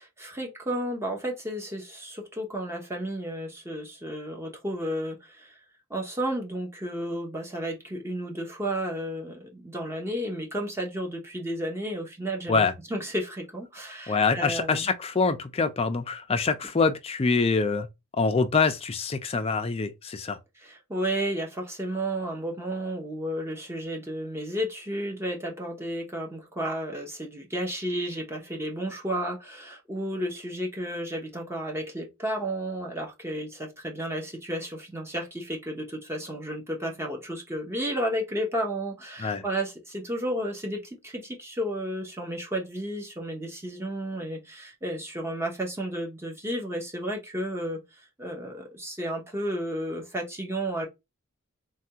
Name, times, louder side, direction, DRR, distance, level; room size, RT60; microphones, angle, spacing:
voice 1, 0.0-5.6 5.9-12.6 12.9-14.9 20.6-47.8 48.2-50.9, right 1 dB, 10° right, 0.8 m, -32 dB
voice 2, 14.1-17.9 18.1-20.4 39.2-39.4, left 4 dB, 30° left, 0.4 m, -25 dB
3.4 x 2.3 x 2.7 m
head